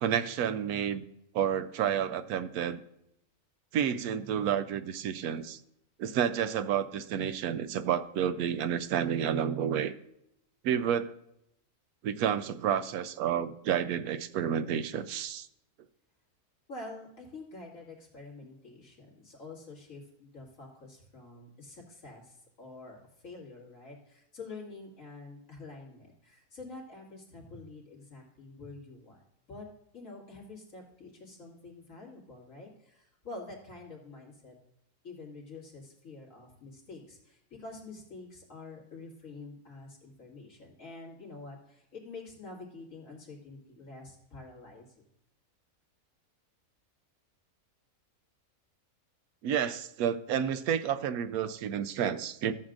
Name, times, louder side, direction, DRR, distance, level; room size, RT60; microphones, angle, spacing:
voice 1, 0.0-1.0 1.3-2.8 3.7-5.6 6.0-9.9 10.6-11.1 12.0-15.5 49.4-52.5, right 9 dB, 85° right, 13 dB, 1.1 m, -30 dB
voice 2, 16.7-29.2 29.5-29.7 29.9-34.5 35.0-44.9, left 3 dB, 60° left, -3 dB, 2.8 m, -47 dB
13.5 x 7.6 x 2.5 m, 0.78 s
omnidirectional pair, 1.5 m